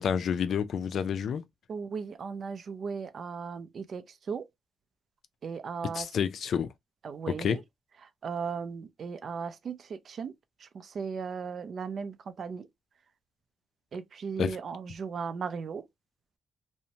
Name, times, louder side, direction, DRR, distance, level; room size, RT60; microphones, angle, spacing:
voice 1, 0.0-1.4 5.8-6.7 7.3-7.6 14.4-14.6, left 7 dB, 65° left, 0.4 m, -29 dB
voice 2, 1.7-4.5 5.4-6.1 7.0-7.6 8.2-10.3 10.6-12.7 13.9-15.8, right 6 dB, 50° right, 0.4 m, -37 dB
2.6 x 2.1 x 2.8 m
cardioid pair, 100°, 0 cm